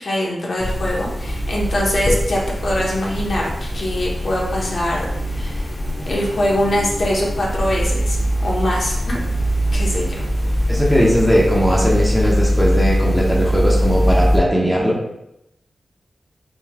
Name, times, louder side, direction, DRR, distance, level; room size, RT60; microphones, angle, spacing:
voice 1, 0.0-5.7 6.1-9.2 9.7-10.0, left 1 dB, 55° left, -3 dB, 1.2 m, -23 dB
sound 1, 0.6-14.4, equal, 35° left, 1.0 m, -21 dB
voice 2, 10.7-15.0, equal, 5° right, -5 dB, 1.1 m, -18 dB
5.3 x 3.2 x 2.4 m, 0.85 s
cardioid pair, 70°, 0 cm